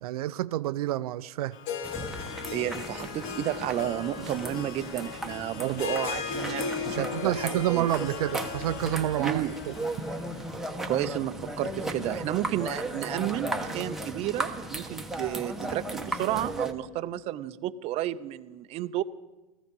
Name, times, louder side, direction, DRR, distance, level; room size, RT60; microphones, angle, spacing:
voice 1, 0.0-1.6 5.6-5.9 6.9-9.7, right 13 dB, 80° right, 0.5 m, -29 dB
Harp, 1.5-10.5, left 7 dB, 65° left, 1.5 m, -37 dB
sound 1, 1.8-16.7, right 1 dB, ahead, 1.0 m, -36 dB
voice 2, 2.5-7.9 9.2-9.5 10.9-19.0, right 13 dB, 35° right, 0.6 m, -31 dB
15.5 x 14.0 x 5.4 m
supercardioid pair, 130°, 19 cm